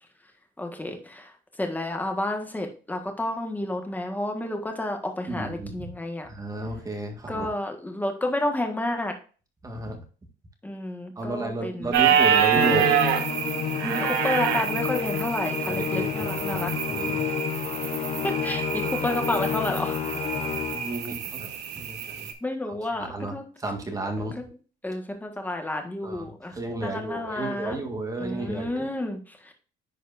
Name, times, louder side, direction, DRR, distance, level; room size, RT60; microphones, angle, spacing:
voice 1, 0.6-1.3 1.6-6.3 7.3-9.1 10.6-12.1 13.8-16.7 18.2-20.0 22.4-23.4 24.2-24.3 24.8-26.6 26.8-27.8 28.2-29.5, left 1 dB, 10° left, 4 dB, 1.6 m, -30 dB
voice 2, 5.3-5.9 6.3-7.5 9.6-10.0 11.2-12.9 15.7-16.6 16.9-17.2 20.7-22.3 23.0-24.4 26.0-28.9, right 2 dB, 20° right, 3 dB, 1.8 m, -33 dB
sound 1, 11.9-22.3, right 9 dB, 90° right, 1.1 m, -27 dB
Musical instrument, 12.5-21.0, left 8 dB, 40° left, 0.7 m, -30 dB
10.5 x 4.2 x 2.6 m, 0.37 s
cardioid pair, 110°, 17 cm